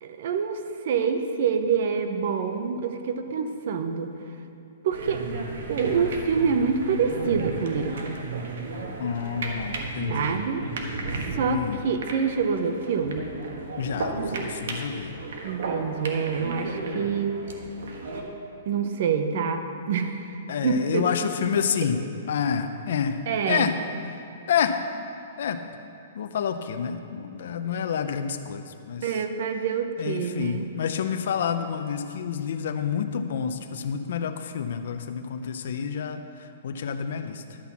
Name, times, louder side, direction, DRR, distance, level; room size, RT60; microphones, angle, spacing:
voice 1, 0.0-4.2 4.8-5.2 5.7-8.2 10.1-10.7 11.3-13.3 15.4-17.4 18.7-21.1 23.3-23.7 29.0-30.7, right 6 dB, 55° right, 7 dB, 0.9 m, -26 dB
sound 1, 4.9-18.2, right 3 dB, 75° right, 1.4 m, -34 dB
voice 2, 9.0-10.3 11.5-11.8 13.8-15.1 20.5-22.0 22.3-23.2 23.5-23.7 24.5-24.8 25.4-25.6 26.1-29.1 30.0-37.6, left 7 dB, 65° left, 7 dB, 0.6 m, -28 dB
11.5 x 5.8 x 7.2 m, 2.5 s
hypercardioid pair, 155°, 0 cm